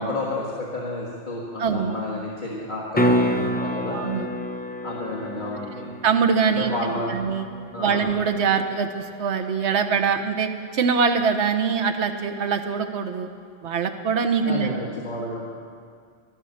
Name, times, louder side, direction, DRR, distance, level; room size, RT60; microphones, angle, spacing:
voice 1, 0.0-4.0 4.8-5.9 6.5-7.2 7.7-8.1 14.4-15.5, left 2 dB, 40° left, -5 dB, 1.7 m, -30 dB
voice 2, 1.6-2.0 3.9-4.3 6.0-6.7 7.1-7.5 7.8-13.3 13.6-14.7, right 6 dB, 65° right, 7 dB, 1.1 m, -23 dB
sound 1, 2.9-9.0 13.6-13.7, equal, 15° left, 0.3 m, -28 dB
12.5 x 12.0 x 6.5 m, 2.1 s
omnidirectional pair, 1.3 m